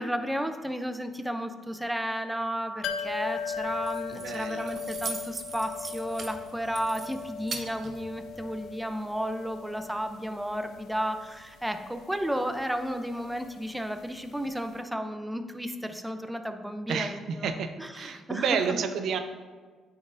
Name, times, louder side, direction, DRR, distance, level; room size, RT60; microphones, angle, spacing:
voice 1, 0.0-17.5 17.8-18.8, equal, 5° right, 7 dB, 0.5 m, -33 dB
sound 1, 2.8-14.4 14.7-14.8, left 6 dB, 70° left, 0.5 m, -39 dB
Keys jangling, 3.6-8.7, right 4 dB, 50° right, 0.8 m, -41 dB
voice 2, 4.1-4.8 16.9-19.2, right 6 dB, 70° right, 8 dB, 0.4 m, -30 dB
9.2 x 4.2 x 2.6 m, 1.5 s
supercardioid pair, 65°, 0 cm